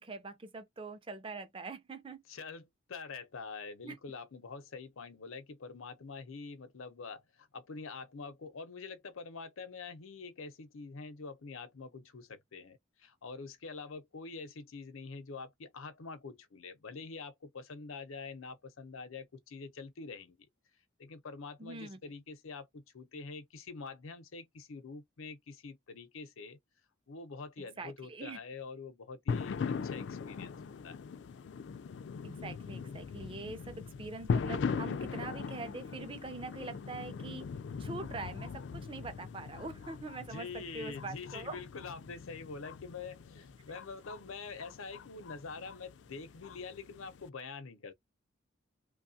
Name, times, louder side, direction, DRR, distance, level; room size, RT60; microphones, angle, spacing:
voice 1, 0.0-2.2 3.8-4.0 21.6-22.0 27.8-28.4 32.2-37.5 37.8-41.6, right 3 dB, 25° right, 0.4 m, -43 dB
voice 2, 2.3-20.4 21.0-26.6 27.1-30.5 30.8-31.0 40.2-47.9, left 4 dB, 90° left, 0.7 m, -46 dB
sound 1, 29.3-47.3, left 5 dB, 60° left, 0.3 m, -40 dB
3.0 x 2.3 x 2.7 m
head